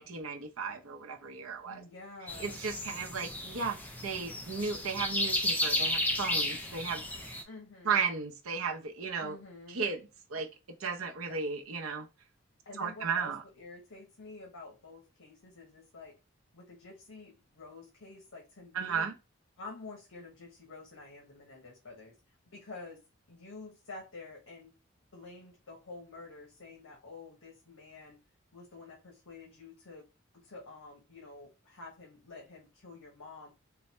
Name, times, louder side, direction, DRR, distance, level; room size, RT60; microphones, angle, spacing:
voice 1, 0.0-1.8 2.4-3.8 4.0-7.4 7.8-9.4 9.7-10.0 10.3-10.5 10.8-12.1 12.8-13.4 18.7-19.1, right 5 dB, 85° right, 0.8 m, -35 dB
voice 2, 1.6-2.6 7.4-8.0 9.2-9.8 12.6-13.3 13.6-16.1 16.5-19.1 19.6-22.1 22.4-23.0 23.3-24.7 25.1-28.2 28.5-30.1 30.3-33.5, left 3 dB, 85° left, 1.2 m, -49 dB
sound 1, 2.3-7.4, left 1 dB, 10° left, 0.5 m, -33 dB
4.0 x 2.3 x 4.1 m
head